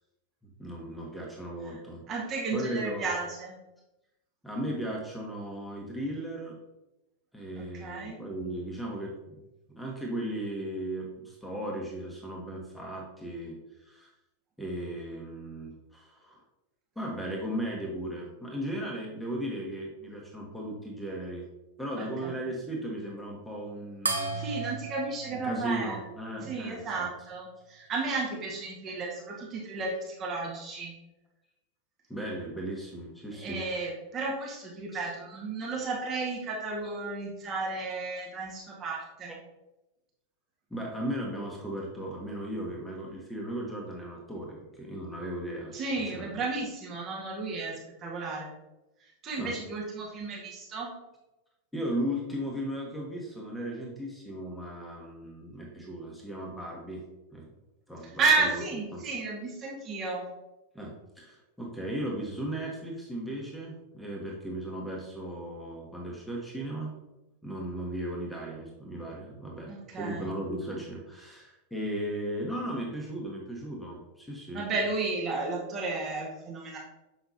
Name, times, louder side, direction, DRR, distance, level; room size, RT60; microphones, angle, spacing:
voice 1, 0.6-2.0 2.5-3.1 4.4-6.6 7.3-9.4 9.7-14.1 14.6-16.4 16.9-21.5 21.8-24.4 25.3-27.1 32.1-33.6 34.9-35.1 40.7-45.7 46.1-46.4 49.4-49.5 51.7-57.0 57.3-57.4 57.9-58.6 58.9-59.0 60.7-66.9 67.4-74.7, right 1 dB, 5° left, -2 dB, 1.3 m, -36 dB
voice 2, 2.1-3.5 7.5-8.2 22.0-22.3 24.3-26.0 26.4-30.9 33.4-39.3 45.7-48.5 49.2-50.9 58.2-60.3 69.7-70.3 74.5-76.8, right 3 dB, 30° right, -3 dB, 1.6 m, -33 dB
sound 1, 24.1-26.9, right 3 dB, 75° right, 0.7 m, -35 dB
7.0 x 5.8 x 2.8 m, 0.97 s
figure-of-eight pair, 90°, 0 cm